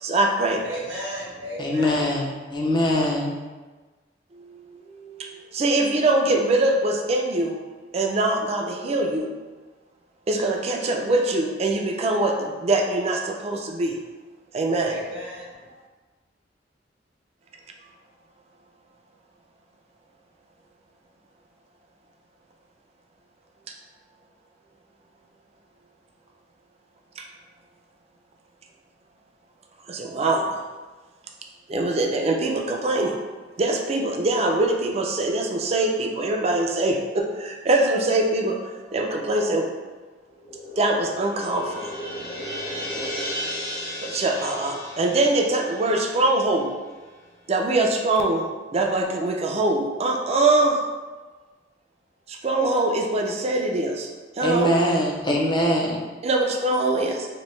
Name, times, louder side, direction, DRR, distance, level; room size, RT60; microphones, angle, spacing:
voice 1, 0.0-0.6 4.3-7.6 7.9-9.3 10.3-14.0 14.5-15.0 27.2-27.3 29.9-30.6 31.7-33.1 33.6-38.6 38.9-39.7 40.8-41.9 44.0-46.8 47.5-50.8 52.3-54.1 54.4-54.7 56.2-57.3, right 2 dB, 35° right, 2 dB, 0.4 m, -23 dB
voice 2, 0.6-2.1 14.7-15.7, equal, 75° right, -6 dB, 0.9 m, -34 dB
voice 3, 1.6-3.4 54.4-56.0, left 1 dB, 25° left, -2 dB, 0.5 m, -23 dB
sound 1, 40.3-46.9, equal, 85° left, 1.0 m, -34 dB
3.0 x 2.6 x 3.1 m, 1.3 s
head